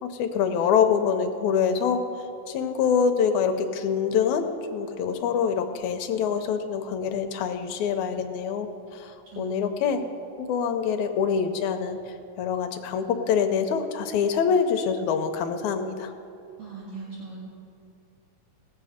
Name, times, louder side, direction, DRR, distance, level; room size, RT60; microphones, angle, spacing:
voice 1, 0.0-2.0 2.5-10.0 10.4-16.1, left 7 dB, 75° left, 6 dB, 1.9 m, -25 dB
voice 2, 9.3-9.7 16.6-17.4, right 4 dB, 55° right, -7 dB, 2.8 m, -39 dB
17.5 x 7.6 x 5.0 m, 2.6 s
omnidirectional pair, 3.7 m